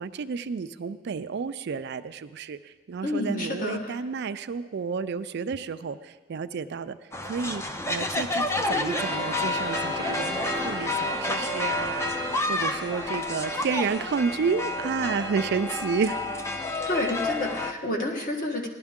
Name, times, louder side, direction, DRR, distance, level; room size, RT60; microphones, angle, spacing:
voice 1, 0.0-7.0 7.2-16.2, right 5 dB, 55° right, 12 dB, 0.4 m, -31 dB
voice 2, 3.0-3.9 16.8-18.7, left 1 dB, 40° left, 1 dB, 1.5 m, -29 dB
sound 1, 7.1-17.7, left 2 dB, 15° left, 0.5 m, -29 dB
sound 2, 8.8-13.9, right 3 dB, 20° right, 0.8 m, -38 dB
17.5 x 11.5 x 3.6 m, 1.4 s
head